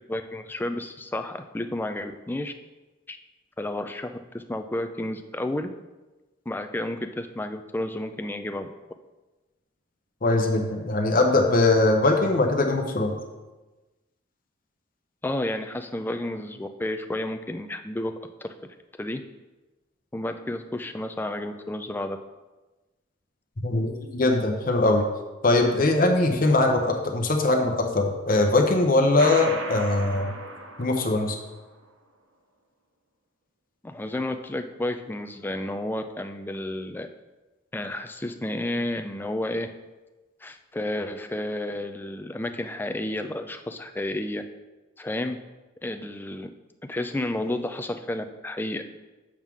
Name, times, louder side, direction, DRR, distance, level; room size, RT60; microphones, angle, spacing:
voice 1, 0.1-2.5 3.1-3.2 3.6-5.7 6.5-8.7 15.2-18.1 18.4-18.5 19.0-19.2 20.1-22.2 33.8-37.1 37.7-39.7 40.4-44.4 45.0-45.4 45.8-46.5 46.9-48.8, left 1 dB, 10° left, 7 dB, 0.3 m, -31 dB
voice 2, 10.2-13.1 23.6-25.1 25.4-30.3 30.8-31.4, left 2 dB, 45° left, 3 dB, 0.8 m, -21 dB
sound 1, 29.2-31.6, right 3 dB, 70° right, 0.8 m, -36 dB
7.3 x 3.6 x 6.1 m, 1.2 s
head